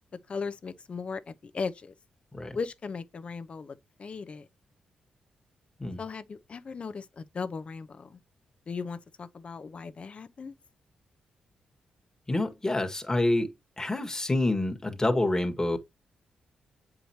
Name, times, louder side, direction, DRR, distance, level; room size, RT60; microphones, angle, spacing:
voice 1, 0.3-1.9 2.5-4.5 6.0-8.2 8.7-10.5, left 5 dB, 50° left, 0.8 m, -37 dB
voice 2, 12.3-13.5 13.8-15.8, left 2 dB, 20° left, 1.7 m, -27 dB
7.8 x 5.0 x 2.9 m
supercardioid pair, 50°, 3 cm